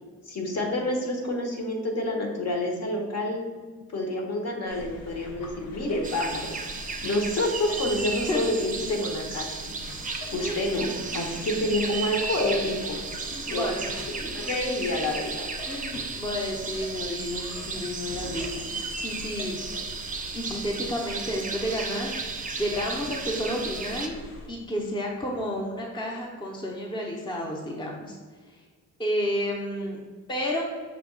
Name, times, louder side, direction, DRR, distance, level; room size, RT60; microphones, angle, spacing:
voice 1, 0.3-3.5 3.9-6.5 7.0-9.8 10.3-10.9 11.1-13.0 13.5-13.7 14.2-15.5, left 1 dB, 55° left, 1 dB, 0.9 m, -28 dB
sound 1, 4.7-24.5, left 1 dB, 85° left, 0.7 m, -43 dB
sound 2, 6.0-24.1, right 4 dB, 25° right, 0.5 m, -34 dB
voice 2, 10.4-10.8 13.5-13.9 14.2-14.5 15.7-19.6 20.3-22.1 22.6-24.1 24.5-28.2 29.0-30.0 30.3-30.6, equal, 15° left, -1 dB, 0.6 m, -31 dB
5.9 x 2.3 x 3.6 m, 1.5 s
cardioid pair, 105°, 31 cm